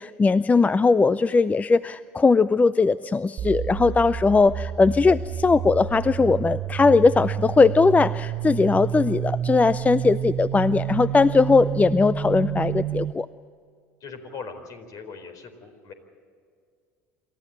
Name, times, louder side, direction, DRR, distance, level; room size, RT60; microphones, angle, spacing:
voice 1, 0.0-13.3, left 4 dB, 20° left, 16 dB, 0.5 m, -19 dB
sound 1, 3.4-13.1, right 10 dB, 50° right, 1.0 m, -30 dB
voice 2, 14.0-15.9, left 5 dB, 50° left, 7 dB, 4.4 m, -40 dB
27.0 x 14.0 x 8.9 m, 2.2 s
hypercardioid pair, 75°, 8 cm